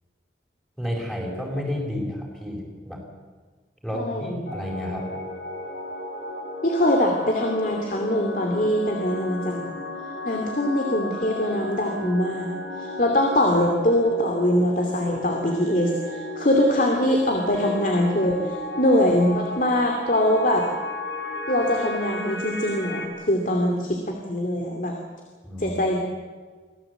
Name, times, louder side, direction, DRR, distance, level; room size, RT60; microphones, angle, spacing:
voice 1, 0.8-3.0 3.8-5.1 25.4-25.8, left 1 dB, 5° left, -2 dB, 4.7 m, -31 dB
voice 2, 3.9-4.4 6.6-9.7 10.3-20.7 21.5-24.9 25.6-26.0, left 1 dB, 45° left, 2 dB, 2.7 m, -23 dB
sound 1, 4.5-23.1, left 1 dB, 75° left, 4.2 m, -34 dB
25.5 x 17.0 x 8.1 m, 1.4 s
head